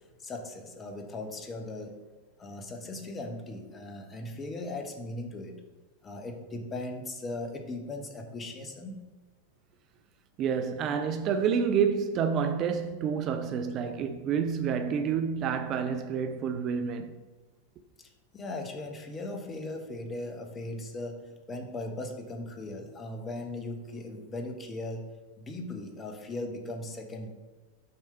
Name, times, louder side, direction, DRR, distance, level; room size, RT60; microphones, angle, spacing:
voice 1, 0.2-2.0 2.4-5.6 6.0-9.0 18.0-25.1 25.4-27.3, left 2 dB, 20° left, 1.0 m, -38 dB
voice 2, 10.4-17.1, right 7 dB, 35° right, 0.4 m, -28 dB
6.5 x 3.3 x 5.5 m
figure-of-eight pair, 90°, 0 cm